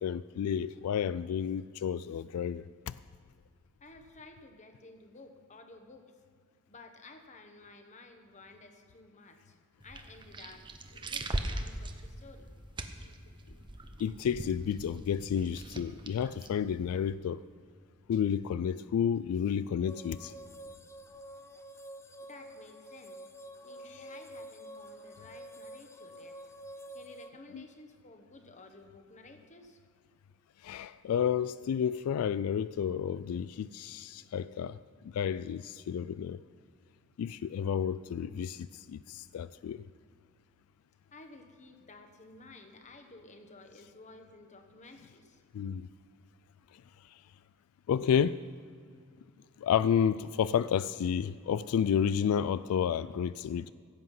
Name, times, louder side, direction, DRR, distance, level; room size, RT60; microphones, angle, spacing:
voice 1, 0.0-2.9 14.0-17.4 18.1-20.3 27.5-27.6 30.6-34.8 35.0-36.4 37.2-39.9 45.5-45.9 47.9-48.4 49.6-53.7, left 8 dB, 90° left, 0.3 m, -31 dB
voice 2, 3.8-6.1 6.7-9.6 9.8-10.7 11.1-12.5 22.2-23.2 23.6-26.5 26.9-29.8 41.1-45.4, left 2 dB, 35° left, 1.2 m, -53 dB
sound 1, 9.8-17.1, right 1 dB, 20° right, 0.7 m, -41 dB
sound 2, 19.9-27.3, right 1 dB, 10° left, 0.6 m, -48 dB
16.0 x 7.9 x 5.6 m
head